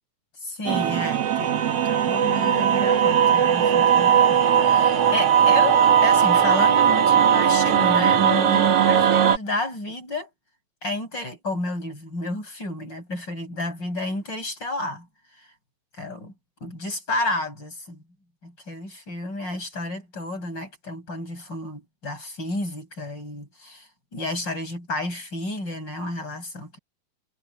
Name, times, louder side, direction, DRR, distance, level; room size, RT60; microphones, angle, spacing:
voice 1, 0.4-10.3 10.8-15.1 15.4-15.5 15.9-16.3 16.6-18.0 18.4-26.8, left 2 dB, 35° left, 8.0 m, -31 dB
sound 1, 0.7-9.4, right 8 dB, 55° right, 2.4 m, -18 dB
omnidirectional pair, 3.5 m